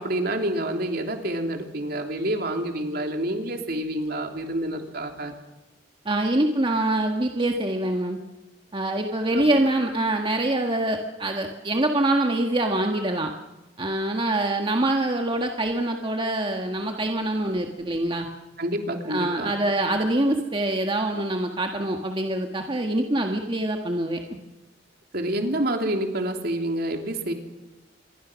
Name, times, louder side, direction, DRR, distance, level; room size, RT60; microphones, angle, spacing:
voice 1, 0.0-5.3 9.3-9.6 18.6-19.5 25.1-27.3, right 1 dB, 60° right, 3 dB, 3.2 m, -28 dB
voice 2, 6.0-8.2 8.7-13.3 13.8-18.3 19.1-24.2, right 1 dB, 30° right, 3 dB, 1.6 m, -25 dB
26.5 x 22.5 x 6.3 m, 1.1 s
head